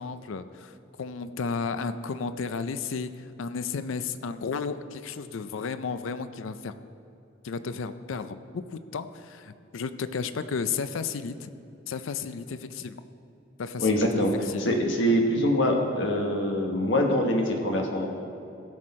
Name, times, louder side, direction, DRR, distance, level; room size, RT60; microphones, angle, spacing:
voice 1, 0.0-6.7 7.4-11.5 11.9-13.0 13.6-14.0 14.5-14.6, left 5 dB, 80° left, 12 dB, 0.5 m, -33 dB
voice 2, 13.8-14.3 14.6-18.1, left 1 dB, 65° left, 2 dB, 1.3 m, -24 dB
16.5 x 6.5 x 4.3 m, 2.8 s
head